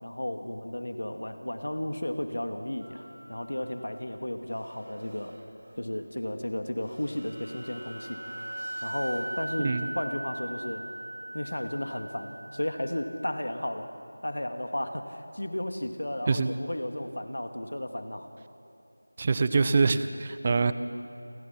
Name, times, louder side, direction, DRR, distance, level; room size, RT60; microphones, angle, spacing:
voice 1, 0.0-5.4 5.8-8.2 8.8-10.9 11.3-13.9 14.2-18.3, left 1 dB, 80° left, 6 dB, 2.1 m, -34 dB
sound 1, 2.8-3.6 4.6-5.9 6.4-6.5 6.8-13.4, right 1 dB, 60° right, 3.2 m, -40 dB
voice 2, 19.2-20.7, right 4 dB, 20° right, 12 dB, 0.6 m, -24 dB
29.0 x 23.5 x 5.9 m, 2.6 s
figure-of-eight pair, 175°, 0 cm